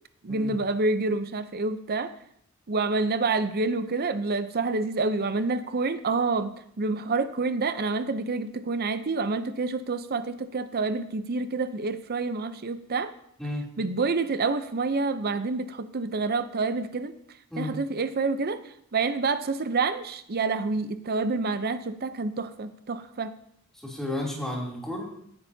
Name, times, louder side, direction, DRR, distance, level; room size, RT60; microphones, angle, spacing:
voice 1, 0.2-2.1 2.7-13.1 13.8-17.1 17.6-23.4, right 3 dB, 45° right, 11 dB, 0.7 m, -28 dB
voice 2, 13.4-13.7 17.5-17.8 23.8-25.1, left 1 dB, ahead, -4 dB, 3.0 m, -32 dB
17.0 x 10.0 x 2.8 m, 0.70 s
head